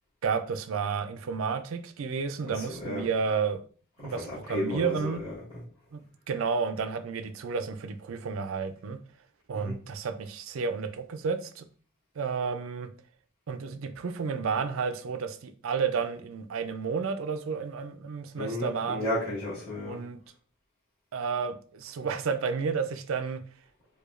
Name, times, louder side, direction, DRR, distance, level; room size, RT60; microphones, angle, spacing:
voice 1, 0.2-3.6 4.0-5.2 5.9-9.0 9.5-11.6 12.2-12.9 13.5-19.1 19.8-20.2 21.1-23.4, right 5 dB, 80° right, 0.4 m, -31 dB
voice 2, 2.5-3.1 4.0-5.6 9.5-9.7 18.4-20.0, left 1 dB, 30° left, 1.5 m, -33 dB
4.8 x 2.3 x 2.4 m
head